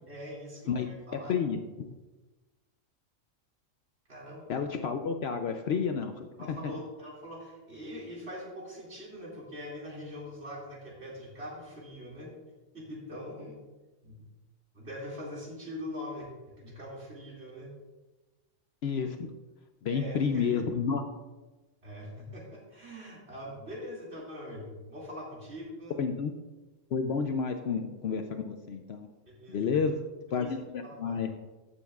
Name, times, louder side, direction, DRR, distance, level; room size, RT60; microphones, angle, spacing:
voice 1, 0.1-1.3 4.1-4.5 6.4-12.3 12.7-13.6 14.0-14.2 14.7-17.7 19.9-20.7 21.8-26.0 29.3-29.8 30.4-30.5 30.8-31.3, equal, 55° right, -4 dB, 2.6 m, -43 dB
voice 2, 0.7-1.9 4.5-6.6 18.8-19.2 19.8-21.0 26.0-26.4 26.9-29.1 29.5-29.9 30.3-31.3, left 6 dB, 60° left, 6 dB, 0.7 m, -30 dB
14.5 x 6.9 x 2.4 m, 1.2 s
omnidirectional pair, 1.3 m